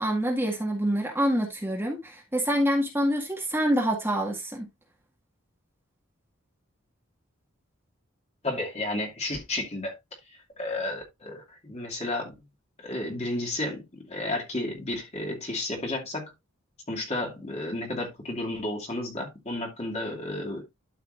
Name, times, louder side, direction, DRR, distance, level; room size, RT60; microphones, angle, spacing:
voice 1, 0.0-4.7, equal, 10° right, 1.9 m, -26 dB
voice 2, 8.4-10.0 10.3-12.3 12.8-16.3 16.9-20.6, left 2 dB, 30° left, 2.4 m, -32 dB
12.0 x 5.7 x 2.5 m
head